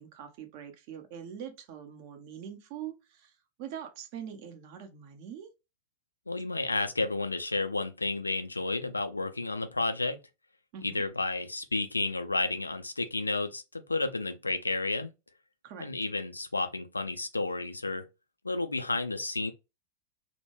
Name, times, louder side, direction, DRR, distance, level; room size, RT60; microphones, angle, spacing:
voice 1, 0.0-3.3 3.6-5.5 10.7-11.0 15.6-15.9, right 9 dB, 45° right, 0.6 m, -43 dB
voice 2, 6.3-10.2 10.8-15.1 15.8-18.0 18.4-19.5, left 3 dB, 80° left, 0.3 m, -31 dB
2.1 x 2.1 x 3.1 m
figure-of-eight pair, 90°, 0 cm